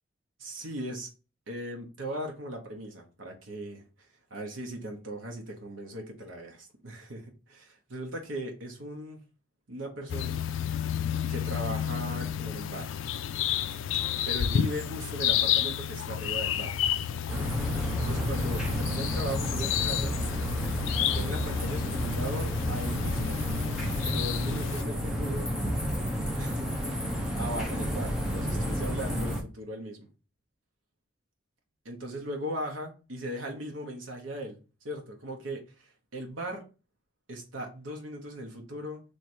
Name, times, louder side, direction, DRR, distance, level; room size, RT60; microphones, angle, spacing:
voice 1, 0.4-1.1 1.5-9.3 9.7-10.4 11.3-12.9 14.3-16.7 18.0-20.2 21.1-23.4 24.0-25.5 26.4-26.9 27.4-30.1 31.8-34.6 34.8-36.6 37.3-39.0, right 1 dB, 85° right, 1.1 m, -38 dB
sound 1, 10.1-24.8, left 9 dB, 80° left, 0.3 m, -31 dB
sound 2, 17.3-29.4, equal, 5° right, 0.7 m, -31 dB
3.2 x 3.2 x 4.4 m
head